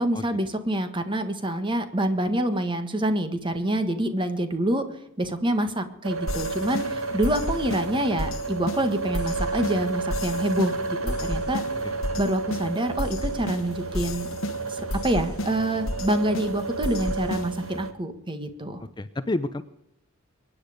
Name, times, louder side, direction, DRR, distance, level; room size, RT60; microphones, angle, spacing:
voice 1, 0.0-4.9 5.2-11.6 12.2-14.3 14.7-18.8, right 1 dB, 25° right, 8 dB, 1.6 m, -26 dB
sound 1, 6.0-17.9, right 3 dB, 85° right, 1.7 m, -32 dB
sound 2, 6.3-17.8, left 1 dB, 80° left, 1.3 m, -33 dB
voice 2, 18.8-19.6, left 2 dB, 20° left, 11 dB, 0.6 m, -30 dB
23.5 x 10.0 x 5.1 m, 0.79 s
head